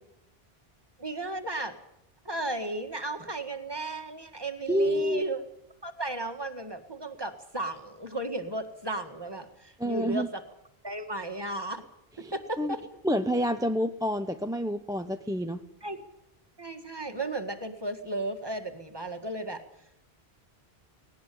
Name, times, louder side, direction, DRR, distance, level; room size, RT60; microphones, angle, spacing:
voice 1, 1.0-1.8 2.3-5.4 5.8-10.4 10.8-11.8 12.2-13.0 15.8-16.0 16.6-19.6, right 2 dB, 25° right, 6 dB, 1.9 m, -34 dB
voice 2, 4.7-5.2 9.8-10.3 12.2-12.7 13.0-15.6, equal, 5° right, 7 dB, 0.7 m, -28 dB
18.5 x 18.0 x 8.6 m, 0.87 s
omnidirectional pair, 1.0 m